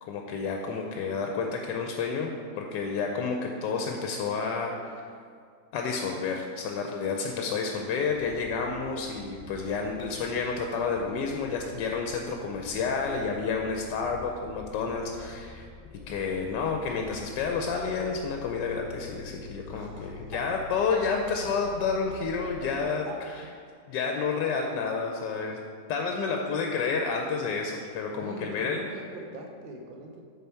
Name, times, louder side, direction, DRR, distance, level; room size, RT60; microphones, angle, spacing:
voice 1, 0.0-2.3 2.6-5.0 5.7-15.7 16.1-23.0 23.9-25.6 25.9-28.8, left 5 dB, 80° left, 2 dB, 1.2 m, -30 dB
sound 1, 8.1-22.8, left 3 dB, 60° left, 0.9 m, -47 dB
voice 2, 19.7-20.4 22.4-22.5 22.8-23.2 25.0-25.1 28.1-30.2, right 3 dB, 80° right, 2 dB, 0.4 m, -43 dB
6.9 x 4.1 x 4.4 m, 2.2 s
omnidirectional pair, 1.9 m